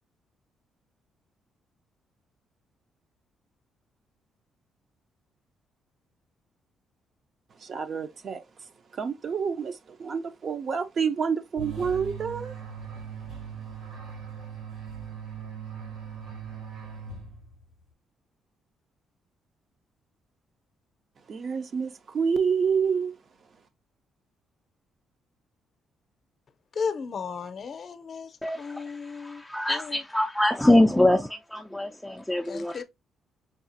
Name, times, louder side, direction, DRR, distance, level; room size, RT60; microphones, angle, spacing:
voice 1, 7.6-12.6 21.3-23.2, right 6 dB, 50° right, 0.5 m, -28 dB
sound 1, 11.6-17.7, right 6 dB, 75° right, 1.8 m, -39 dB
voice 2, 26.7-29.4 29.7-30.0 32.5-32.8, left 5 dB, 50° left, 0.6 m, -35 dB
voice 3, 28.4-32.8, left 1 dB, 5° left, 0.3 m, -24 dB
5.4 x 2.4 x 2.6 m
cardioid pair, 90°, 0 cm